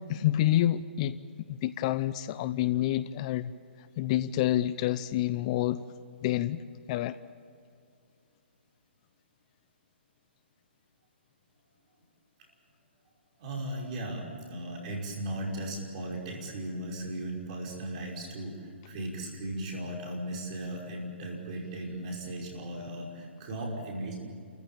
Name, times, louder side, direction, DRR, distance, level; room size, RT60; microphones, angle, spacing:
voice 1, 0.1-1.2 1.5-3.5 4.0-5.8 6.2-6.6 6.9-7.2, left 13 dB, 35° left, 15 dB, 0.6 m, -28 dB
voice 2, 13.4-24.2, right 1 dB, 40° right, -1 dB, 5.6 m, -37 dB
29.5 x 15.0 x 9.0 m, 2.4 s
figure-of-eight pair, 135°, 6 cm